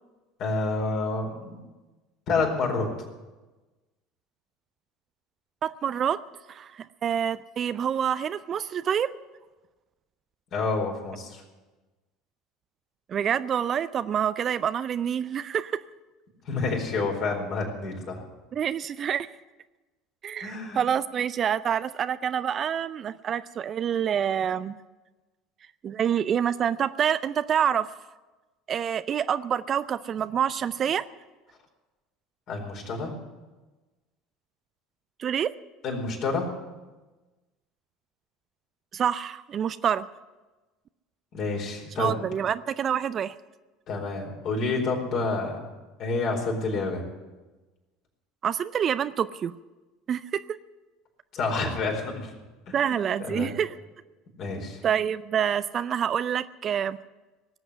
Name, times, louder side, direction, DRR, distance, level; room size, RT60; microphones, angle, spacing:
voice 1, 0.4-1.6 2.3-2.9 10.5-11.4 16.4-18.2 20.4-20.8 32.5-33.1 35.8-36.5 41.3-42.2 43.9-45.6 46.0-47.0 51.3-52.3 52.7-53.5 54.4-54.8, left 3 dB, 50° left, 1 dB, 4.4 m, -29 dB
voice 2, 5.6-6.2 6.5-9.1 13.1-15.7 18.5-19.3 20.2-24.8 25.8-27.9 28.7-31.0 35.2-35.5 38.9-40.1 42.0-43.3 48.4-49.5 50.1-50.4 52.7-53.7 54.8-57.0, right 8 dB, 40° right, 14 dB, 0.5 m, -27 dB
18.5 x 7.9 x 9.7 m, 1.2 s
figure-of-eight pair, 70°, 0 cm